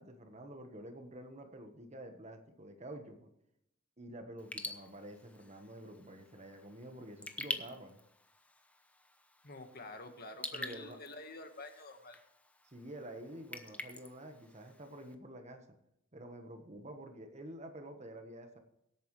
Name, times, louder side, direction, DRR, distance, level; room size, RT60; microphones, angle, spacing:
voice 1, 0.0-3.3 4.0-8.0 10.5-11.0 12.6-15.6 16.1-18.6, right 1 dB, 35° right, 6 dB, 1.4 m, -49 dB
Raindrop / Drip, 4.4-15.1, left 2 dB, 5° left, 0.8 m, -47 dB
voice 2, 9.4-12.2, left 2 dB, 50° left, 7 dB, 1.5 m, -48 dB
23.0 x 8.8 x 3.3 m, 0.79 s
head